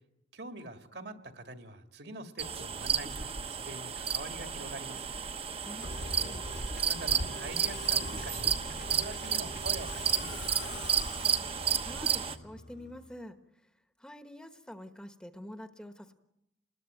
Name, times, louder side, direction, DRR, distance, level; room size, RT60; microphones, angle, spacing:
voice 1, 0.3-5.1 6.8-8.5 8.9-10.8, right 2 dB, 65° right, 6 dB, 2.2 m, -44 dB
sound 1, 2.4-12.4, right 7 dB, 30° right, 1.0 m, -32 dB
voice 2, 5.6-6.4 11.8-13.7 14.0-16.1, left 1 dB, 5° left, 8 dB, 1.2 m, -47 dB
Musical instrument, 5.8-13.1, left 2 dB, 70° left, 2.7 m, -43 dB
29.0 x 20.5 x 9.1 m, 0.90 s
head